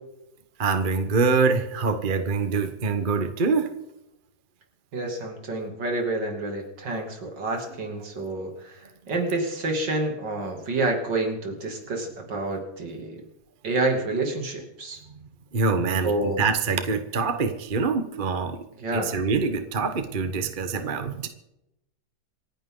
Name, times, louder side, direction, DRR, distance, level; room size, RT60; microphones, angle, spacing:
voice 1, 0.6-3.7 15.5-18.6 18.9-21.3, right 4 dB, 30° right, 8 dB, 1.2 m, -25 dB
voice 2, 4.9-8.7 9.1-13.2 13.6-15.0 16.0-16.4 18.8-19.1, right 2 dB, 85° right, 2 dB, 3.4 m, -28 dB
27.0 x 11.0 x 3.9 m, 0.87 s
omnidirectional pair, 1.9 m